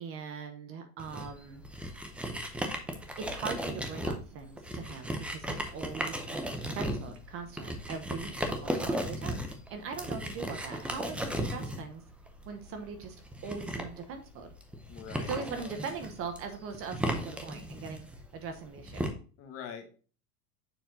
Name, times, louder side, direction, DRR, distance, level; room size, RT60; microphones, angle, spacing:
voice 1, 0.0-1.6 3.2-12.0 12.5-13.2 13.4-14.5 15.2-18.1 18.3-19.1, right 5 dB, 30° right, 7 dB, 0.9 m, -41 dB
sound 1, 1.0-19.1, right 1 dB, 5° right, 0.5 m, -36 dB
voice 2, 9.8-10.4 14.9-15.3 15.6-15.7 19.4-19.9, left 8 dB, 30° left, 6 dB, 1.4 m, -45 dB
7.0 x 5.7 x 2.7 m, 0.38 s
supercardioid pair, 155°, 44 cm